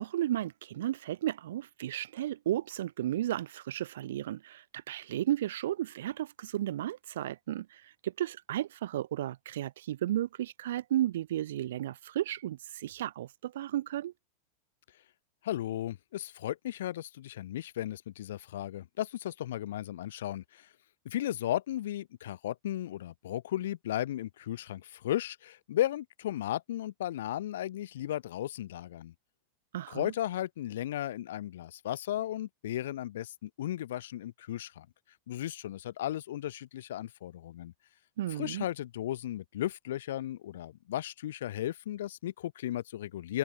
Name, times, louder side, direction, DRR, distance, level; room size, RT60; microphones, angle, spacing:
voice 1, 0.0-14.1 29.7-30.1 38.2-38.6, right 13 dB, 85° right, 2.1 m, -34 dB
voice 2, 15.4-20.7 21.1-29.1 29.9-34.9 35.3-37.7 38.3-43.4, left 13 dB, 80° left, 3.7 m, -35 dB
supercardioid pair, 180°, 0 cm